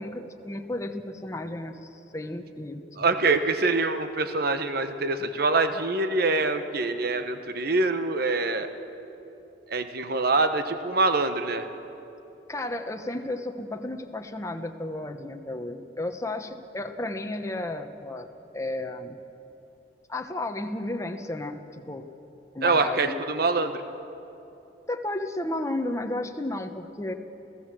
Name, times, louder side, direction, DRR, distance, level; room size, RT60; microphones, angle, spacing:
voice 1, 0.0-3.4 12.5-19.2 20.1-22.1 22.5-23.2 24.9-27.1, left 1 dB, 15° left, 5 dB, 1.0 m, -33 dB
voice 2, 3.0-8.7 9.7-11.6 22.6-23.8, right 3 dB, 60° right, 9 dB, 1.1 m, -25 dB
29.5 x 16.0 x 7.5 m, 3.0 s
head